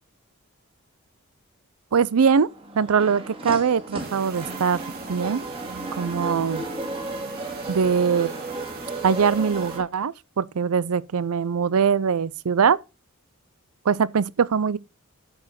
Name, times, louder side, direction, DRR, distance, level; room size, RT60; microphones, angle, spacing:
voice 1, 1.9-2.5 2.8-4.8 5.1-5.4 6.0-6.6 7.7-8.3 9.0-12.8 13.9-14.8, right 6 dB, 80° right, 0.5 m, -22 dB
sound 1, 2.4-9.8, right 2 dB, 25° right, 2.1 m, -34 dB
sound 2, 4.0-9.8, right 3 dB, 45° right, 2.3 m, -42 dB
8.6 x 5.0 x 5.8 m
head